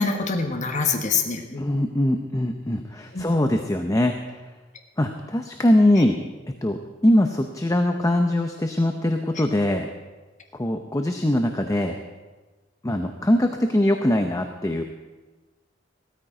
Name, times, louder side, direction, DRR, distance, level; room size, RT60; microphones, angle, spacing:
voice 1, 0.0-1.9 3.1-3.3, left 4 dB, 40° left, 2 dB, 1.3 m, -25 dB
voice 2, 1.6-4.4 5.0-6.2 6.6-6.8 7.0-9.9 10.5-12.0 12.8-14.8, left 1 dB, 15° left, 5 dB, 0.7 m, -22 dB
16.5 x 13.5 x 4.9 m, 1.3 s
head